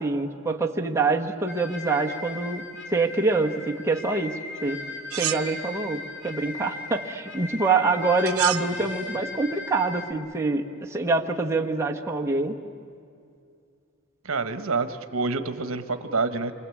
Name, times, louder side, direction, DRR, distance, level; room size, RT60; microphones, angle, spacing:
voice 1, 0.0-2.6 2.9-4.3 4.6-4.8 5.1-10.6 10.9-12.5, right 3 dB, 15° right, -1 dB, 1.3 m, -25 dB
sound 1, 1.5-10.1, left 3 dB, 60° left, 2.0 m, -38 dB
sound 2, 5.1-6.1 8.3-8.8, right 12 dB, 90° right, 0.7 m, -31 dB
voice 2, 14.2-16.5, right 4 dB, 70° right, 9 dB, 1.2 m, -27 dB
28.0 x 24.0 x 8.5 m, 2.4 s
head